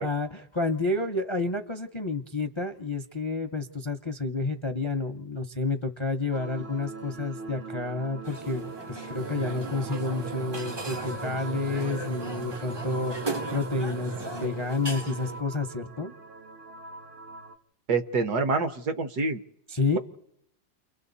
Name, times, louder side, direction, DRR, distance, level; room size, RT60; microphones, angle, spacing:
voice 1, 0.0-16.1 19.7-20.0, left 3 dB, 25° left, 7 dB, 0.6 m, -30 dB
sound 1, 6.3-17.6, right 3 dB, 45° right, 0.9 m, -42 dB
sound 2, 8.2-15.4, right 2 dB, 25° right, 0.5 m, -38 dB
sound 3, 9.2-14.5, right 3 dB, 80° right, 1.8 m, -40 dB
voice 2, 17.9-19.4, right 4 dB, 60° right, 9 dB, 1.5 m, -26 dB
29.5 x 24.0 x 4.1 m, 0.76 s
omnidirectional pair, 2.0 m